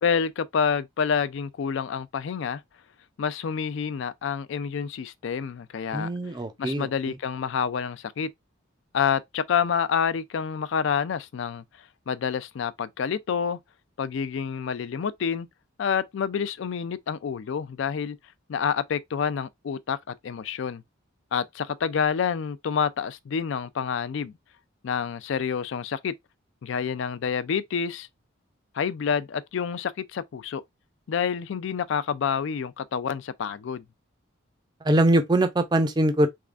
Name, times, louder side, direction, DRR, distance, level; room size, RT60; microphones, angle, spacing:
voice 1, 0.0-2.6 3.2-6.1 6.6-8.3 8.9-11.6 12.1-13.6 14.0-15.5 15.8-18.2 18.5-20.8 21.3-24.3 24.8-26.1 26.6-28.1 28.7-30.6 31.1-33.8, left 7 dB, 65° left, 0.3 m, -28 dB
voice 2, 5.9-6.9 34.8-36.3, right 1 dB, 20° right, 0.4 m, -22 dB
3.6 x 3.2 x 2.4 m
head